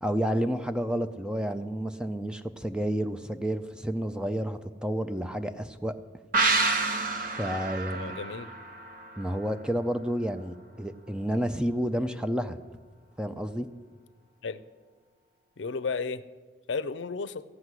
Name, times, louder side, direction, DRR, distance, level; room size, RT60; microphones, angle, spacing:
voice 1, 0.0-6.0 7.2-8.2 9.2-12.6 13.2-13.7, equal, 5° right, 9 dB, 0.4 m, -30 dB
sound 1, 6.3-9.8 10.1-10.2, right 3 dB, 45° right, 1.1 m, -29 dB
voice 2, 7.9-8.5 14.4-14.6 15.6-16.2 16.7-17.4, left 4 dB, 75° left, 14 dB, 0.5 m, -33 dB
14.5 x 6.2 x 9.7 m, 1.4 s
head